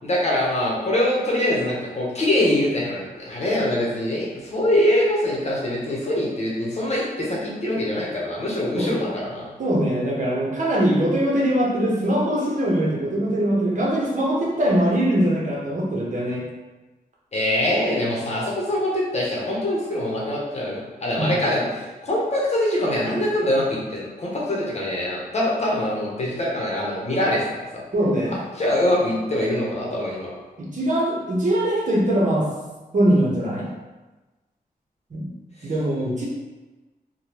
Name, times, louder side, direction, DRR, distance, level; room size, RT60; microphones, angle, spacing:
voice 1, 0.0-9.5 17.3-27.4 27.7-27.8 28.3-30.3, left 1 dB, 45° left, -4 dB, 0.9 m, -23 dB
voice 2, 8.7-9.1 9.6-16.4 21.2-21.3 27.9-28.4 30.6-32.5 32.9-33.7 35.1-35.3 35.6-36.2, right 1 dB, 55° right, -5 dB, 0.9 m, -22 dB
3.3 x 2.3 x 2.9 m, 1.2 s
wide cardioid pair, 90°, 16 cm